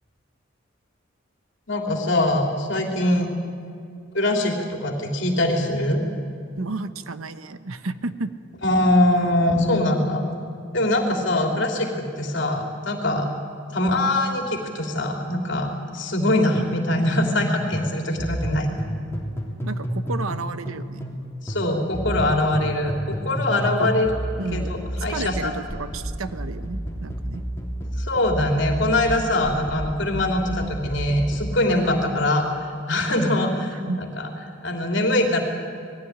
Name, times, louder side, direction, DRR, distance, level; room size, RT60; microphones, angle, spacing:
voice 1, 1.7-3.3 4.1-6.0 8.6-10.2 10.7-13.3 13.7-18.7 21.4-24.1 24.5-25.5 28.0-34.3 34.6-35.4, left 1 dB, 60° left, 1 dB, 3.3 m, -23 dB
voice 2, 6.6-8.3 19.6-21.0 23.5-23.9 24.4-27.4 33.7-34.0, right 3 dB, 90° right, 11 dB, 1.0 m, -32 dB
sound 1, 16.5-17.5 17.7-21.2 21.5-31.6, equal, 10° left, 3.2 m, -31 dB
20.0 x 15.0 x 9.9 m, 2.5 s
head